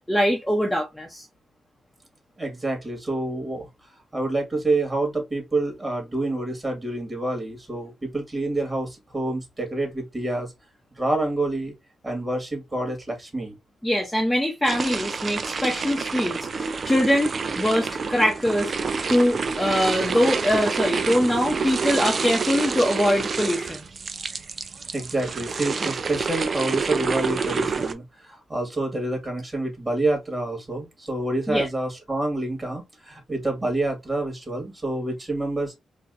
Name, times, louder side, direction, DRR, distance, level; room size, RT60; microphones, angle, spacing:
voice 1, 0.1-1.2 13.8-17.3 17.6-18.7 19.1-23.8 31.5-31.7, equal, 5° left, 0.9 m, -23 dB
voice 2, 2.4-3.7 4.1-10.5 11.0-11.7 12.0-13.5 24.9-35.7, right 2 dB, 20° right, 2.3 m, -27 dB
sound 1, 14.6-27.9, right 5 dB, 45° right, 0.5 m, -28 dB
4.0 x 2.9 x 2.7 m
cardioid pair, 95°, 0 cm